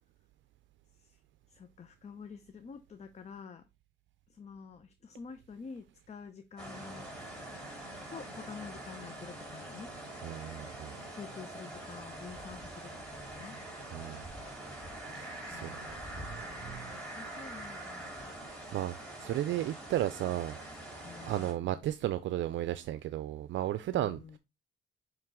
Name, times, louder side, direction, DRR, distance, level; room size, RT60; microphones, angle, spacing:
voice 1, 1.5-3.6 4.3-7.1 8.1-9.9 11.1-13.6 15.5-18.4 21.0-21.7 23.9-24.4, left 6 dB, 35° left, 0.7 m, -48 dB
sound 1, 6.6-21.5, right 1 dB, ahead, 3.5 m, -44 dB
voice 2, 10.2-11.0 13.9-14.2 15.1-15.8 16.3-16.9 18.7-20.6 21.2-24.4, right 13 dB, 70° right, 0.5 m, -34 dB
9.0 x 3.3 x 3.6 m
cardioid pair, 90°, 20 cm